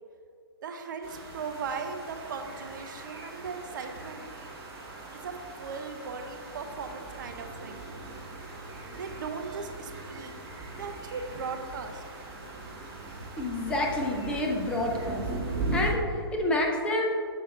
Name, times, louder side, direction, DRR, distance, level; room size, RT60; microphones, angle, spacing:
voice 1, 0.6-4.3 5.1-7.9 8.5-8.7 9.0-10.4 10.8-12.0, right 5 dB, 50° right, 6 dB, 0.6 m, -38 dB
sound 1, 1.0-15.9, right 2 dB, 25° right, 1.4 m, -39 dB
voice 2, 13.4-15.3 15.7-17.1, left 1 dB, 5° left, -1 dB, 0.5 m, -28 dB
6.9 x 5.6 x 3.1 m, 2.3 s
hypercardioid pair, 135°, 13 cm